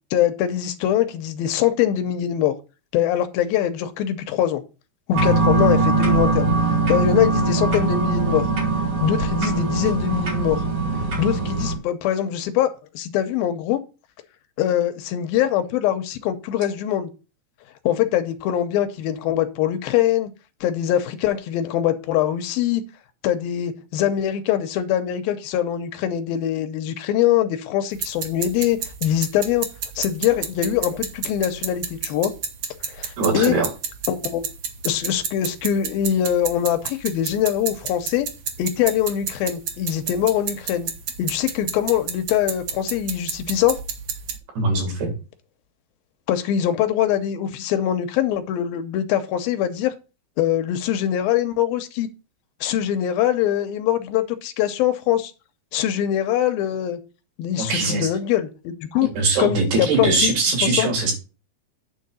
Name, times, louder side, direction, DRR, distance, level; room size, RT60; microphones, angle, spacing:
voice 1, 0.1-2.6 2.9-4.6 5.1-8.4 9.0-10.6 11.2-12.7 12.9-13.8 14.6-17.1 17.9-20.3 20.6-22.8 23.2-29.7 30.0-32.3 32.9-33.6 34.1-34.4 34.8-38.3 38.6-40.9 41.2-43.8 46.3-49.9 50.4-52.1 52.6-55.3 55.7-57.0 57.4-59.1 59.4-60.3 60.6-60.9, left 11 dB, 80° left, 2.5 m, -23 dB
sound 1, 5.1-11.8, right 3 dB, 45° right, 3.3 m, -21 dB
sound 2, 27.9-44.4, right 7 dB, 70° right, 1.5 m, -31 dB
voice 2, 33.2-33.7 44.6-45.1 57.6-58.1 59.2-61.1, right 3 dB, 85° right, 5.4 m, -21 dB
9.2 x 3.8 x 6.8 m
omnidirectional pair, 4.4 m